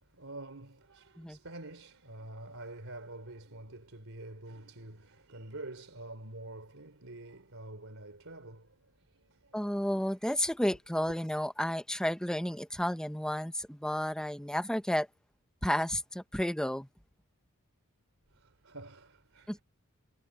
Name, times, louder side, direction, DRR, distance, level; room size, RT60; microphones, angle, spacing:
voice 1, 0.0-9.8 10.4-10.7 18.3-19.6, right 2 dB, 65° right, 4.1 m, -47 dB
voice 2, 9.5-15.1 15.6-16.9 19.5-19.6, equal, 5° left, 0.8 m, -32 dB
head